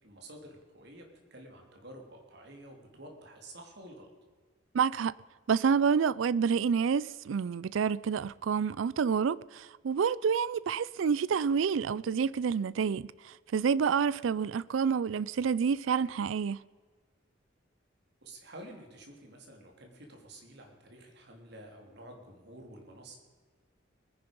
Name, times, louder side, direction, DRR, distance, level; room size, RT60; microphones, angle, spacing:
voice 1, 0.0-4.1 18.2-23.2, right 1 dB, 60° right, 3.2 m, -50 dB
voice 2, 4.7-5.1 5.5-16.6, right 6 dB, 80° right, 0.4 m, -28 dB
21.0 x 10.5 x 5.3 m
head